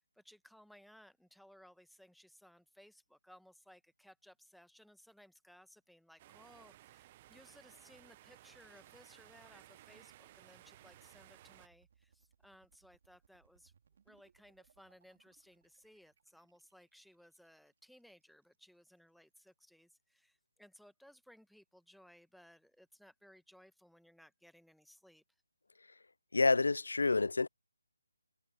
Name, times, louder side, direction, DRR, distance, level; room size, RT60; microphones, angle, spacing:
voice 1, 0.0-13.7 14.0-25.2, equal, ahead, 1.2 m, -62 dB
sound 1, 6.2-11.7, right 15 dB, 25° right, 0.9 m, -59 dB
sound 2, 8.7-18.7, right 7 dB, 45° right, 3.9 m, -71 dB
voice 2, 26.3-27.5, left 3 dB, 70° left, 0.5 m, -28 dB
figure-of-eight pair, 155°, 0 cm